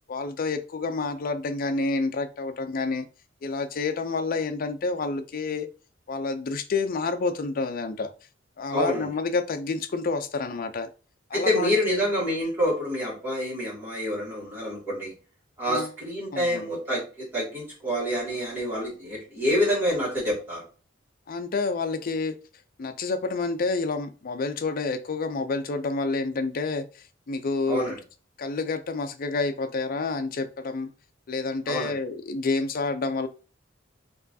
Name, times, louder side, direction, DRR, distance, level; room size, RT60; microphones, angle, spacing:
voice 1, 0.1-3.0 3.4-5.7 6.1-8.1 8.6-10.9 11.3-12.0 15.7-15.9 16.3-16.7 21.3-22.4 22.8-27.9 28.4-30.9 31.3-33.3, left 3 dB, 50° left, 0.5 m, -29 dB
voice 2, 8.7-9.1 11.3-15.1 15.6-20.6 27.7-28.0 31.7-31.9, equal, 10° right, 2.1 m, -27 dB
4.5 x 3.1 x 2.7 m
head